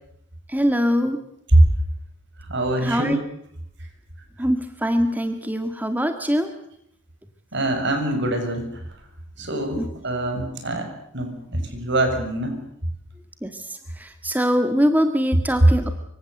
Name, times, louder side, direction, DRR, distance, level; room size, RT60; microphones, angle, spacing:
voice 1, 0.5-1.2 2.8-3.2 4.4-6.5 9.7-9.9 13.4-15.9, equal, 10° right, 7 dB, 1.8 m, -23 dB
voice 2, 2.5-3.2 7.5-8.8 9.4-12.6, right 1 dB, 60° right, 7 dB, 6.7 m, -23 dB
25.5 x 24.5 x 8.0 m, 0.70 s
head